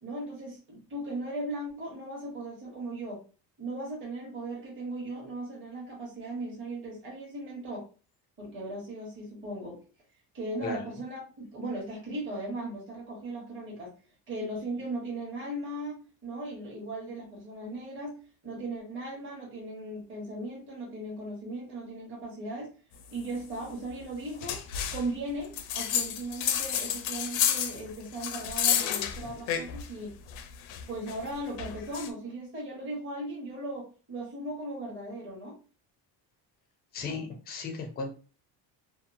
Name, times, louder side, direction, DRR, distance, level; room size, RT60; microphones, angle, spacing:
voice 1, 0.0-3.2 3.6-7.8 8.4-9.8 10.3-13.9 14.3-18.2 18.4-22.7 23.1-24.6 24.9-30.1 30.9-35.6, right 1 dB, 25° right, -4 dB, 0.9 m, -37 dB
sound 1, 24.4-25.1 25.5-29.9 30.3-32.1, left 9 dB, 85° left, 0.6 m, -30 dB
voice 2, 36.9-38.1, left 4 dB, 25° left, 1 dB, 0.4 m, -36 dB
2.8 x 2.2 x 2.5 m, 0.36 s
cardioid pair, 170°, 46 cm